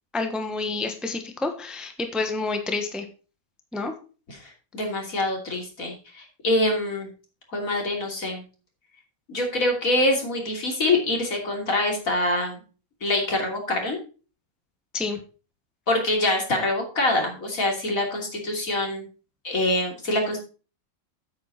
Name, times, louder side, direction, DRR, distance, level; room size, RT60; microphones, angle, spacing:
voice 1, 0.1-3.0 3.7-3.9 14.9-15.2, left 3 dB, ahead, 5 dB, 1.1 m, -28 dB
voice 2, 4.3-7.1 7.5-8.4 9.3-12.6 13.0-14.0 15.9-19.0 19.4-20.4, left 1 dB, 65° left, 1 dB, 3.3 m, -25 dB
8.5 x 8.4 x 4.2 m, 0.35 s
omnidirectional pair, 1.5 m